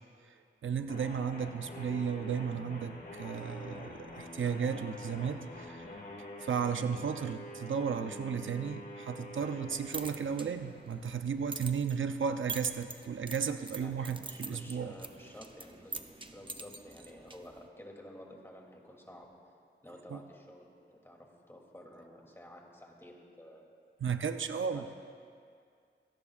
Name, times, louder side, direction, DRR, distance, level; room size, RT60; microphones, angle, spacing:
voice 1, 0.2-5.8 6.4-15.0 20.1-20.2 24.0-24.8, right 6 dB, 90° right, 8 dB, 0.6 m, -34 dB
sound 1, 0.9-11.1, left 1 dB, 50° left, 2.3 m, -47 dB
sound 2, 9.6-17.7, right 3 dB, 25° right, 0.8 m, -45 dB
voice 2, 13.8-19.3 19.8-23.7 24.4-24.9, left 1 dB, 10° left, -1 dB, 2.8 m, -52 dB
27.0 x 18.0 x 2.5 m, 2.2 s
wide cardioid pair, 100°, 20 cm